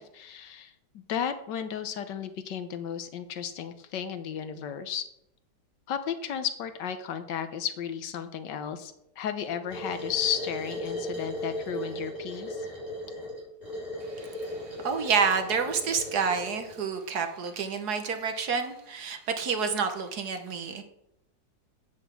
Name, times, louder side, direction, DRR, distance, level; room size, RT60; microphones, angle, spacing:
voice 1, 0.0-5.0 5.9-12.7, left 8 dB, 75° left, 10 dB, 1.5 m, -34 dB
sound 1, 9.7-16.8, equal, 25° left, 5.4 m, -37 dB
voice 2, 14.1-20.8, right 6 dB, 60° right, 7 dB, 1.6 m, -29 dB
8.2 x 6.9 x 7.4 m, 0.80 s
omnidirectional pair, 2.0 m